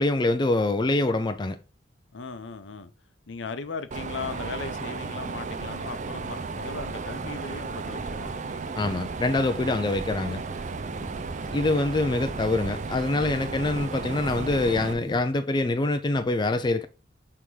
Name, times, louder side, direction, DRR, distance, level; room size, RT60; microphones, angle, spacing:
voice 1, 0.0-1.6 8.8-10.4 11.5-16.9, left 2 dB, 25° left, 0.4 m, -25 dB
voice 2, 2.1-2.9 3.3-8.7 10.9-11.2, left 4 dB, 70° left, 0.7 m, -38 dB
Mechanisms, 3.9-14.9, right 4 dB, 40° right, 0.5 m, -34 dB
sound 1, 4.1-15.2, right 1 dB, ahead, 1.1 m, -46 dB
5.8 x 3.5 x 4.7 m
head